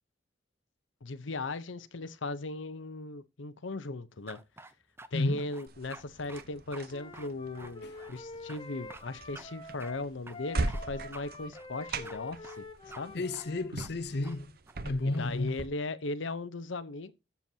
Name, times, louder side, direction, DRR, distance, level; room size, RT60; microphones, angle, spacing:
voice 1, 1.0-4.4 5.1-12.6 13.0-13.2 15.0-17.1, left 3 dB, 90° left, 0.8 m, -38 dB
sound 1, 4.3-5.1 5.4-6.0 6.3-6.4 6.7-6.9 7.1-8.2 8.5-8.6 8.9-9.0 9.3-9.5 9.8-9.9 10.3-10.8 11.1-11.3 11.5-12.2 12.4-12.6 12.9-13.0 13.3-13.5 13.8-13.9 14.2-14.4 14.7-15.3, right 2 dB, 15° right, 0.6 m, -49 dB
sound 2, 5.7-15.7, right 2 dB, 55° right, 0.9 m, -40 dB
Wind instrument woodwind instrument, 6.9-13.7, left 3 dB, 25° left, 1.4 m, -47 dB
voice 2, 13.1-14.5 14.8-15.6, left 2 dB, 60° left, 0.7 m, -32 dB
13.5 x 7.1 x 2.8 m
head